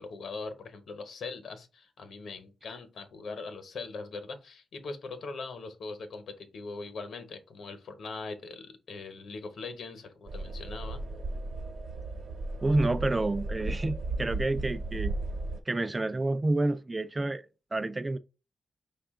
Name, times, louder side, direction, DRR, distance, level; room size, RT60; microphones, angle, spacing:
voice 1, 0.0-11.0, left 3 dB, 70° left, 0.9 m, -41 dB
sound 1, 10.3-15.6, right 2 dB, 60° right, 1.0 m, -35 dB
voice 2, 12.6-15.1 15.7-17.4 17.7-18.2, right 2 dB, 20° right, 0.3 m, -29 dB
5.5 x 2.4 x 3.6 m
wide cardioid pair, 120°, 0 cm